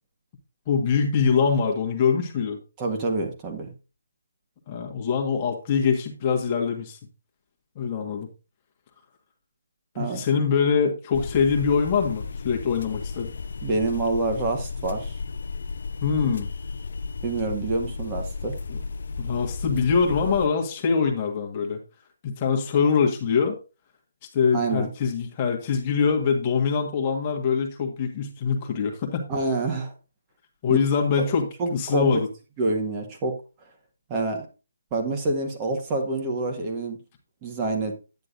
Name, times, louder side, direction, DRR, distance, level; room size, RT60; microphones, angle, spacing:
voice 1, 0.7-2.6 4.7-7.0 7.7-8.3 10.0-13.3 16.0-16.5 18.7-18.8 19.2-21.8 22.2-23.6 24.3-29.3 30.6-32.3, left 6 dB, 25° left, 1 dB, 1.6 m, -23 dB
voice 2, 2.8-3.7 10.0-10.3 13.6-15.1 17.2-18.6 24.5-24.9 29.3-29.9 30.7-30.8 31.2-31.3 31.6-32.2 32.6-33.4 34.1-34.5 34.9-37.0 37.4-37.9, right 3 dB, 20° right, 2 dB, 1.8 m, -27 dB
sound 1, 11.1-20.5, left 4 dB, 55° left, 0.6 m, -34 dB
9.7 x 9.4 x 2.6 m, 0.31 s
figure-of-eight pair, 145°, 0 cm